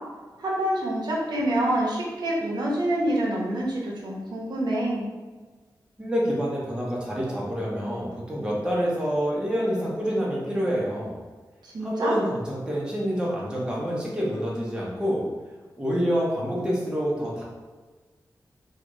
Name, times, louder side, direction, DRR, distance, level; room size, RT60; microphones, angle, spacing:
voice 1, 0.4-5.1 11.6-12.1, right 1 dB, 75° right, -4 dB, 0.7 m, -26 dB
voice 2, 6.0-11.2 11.8-15.2 15.8-17.4, equal, 10° right, -6 dB, 0.9 m, -27 dB
3.1 x 2.5 x 3.0 m, 1.3 s
wide cardioid pair, 90°, 7 cm